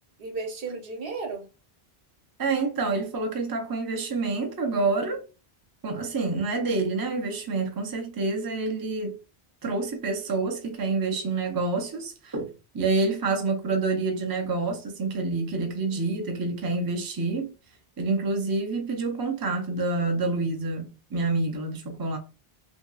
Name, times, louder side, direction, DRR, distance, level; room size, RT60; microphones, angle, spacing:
voice 1, 0.2-1.5 15.6-16.5, right 4 dB, 65° right, 1.0 m, -36 dB
voice 2, 2.4-5.2 5.8-9.2 9.6-17.5 18.0-22.2, right 3 dB, 30° right, 0.4 m, -27 dB
2.9 x 2.6 x 2.3 m
omnidirectional pair, 1.1 m